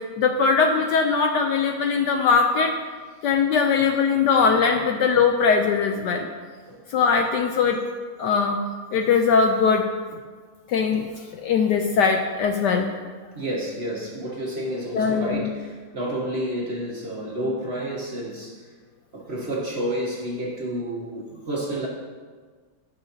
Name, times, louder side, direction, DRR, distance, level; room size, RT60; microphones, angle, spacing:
voice 1, 0.2-2.7 3.2-6.3 6.9-7.8 8.2-8.6 8.9-9.9 10.7-11.1 11.4-12.9 14.9-15.5, left 5 dB, 70° left, 4 dB, 1.1 m, -20 dB
voice 2, 13.3-18.7 19.1-21.9, right 1 dB, 35° right, -4 dB, 1.6 m, -30 dB
16.5 x 5.7 x 2.8 m, 1.5 s
omnidirectional pair, 2.2 m